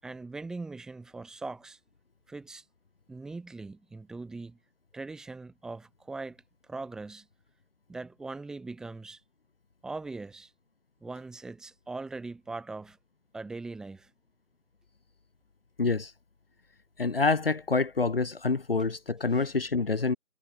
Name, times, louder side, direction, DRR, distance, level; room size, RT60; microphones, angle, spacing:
voice 1, 0.0-1.8 2.3-2.6 3.1-4.6 4.9-7.3 7.9-9.2 9.8-10.5 11.0-13.0 13.3-14.1 18.8-18.9, right 3 dB, ahead, 6.6 m, -41 dB
voice 2, 15.8-16.1 17.0-20.2, left 4 dB, 45° left, 3.4 m, -27 dB
figure-of-eight pair, 170°, 40 cm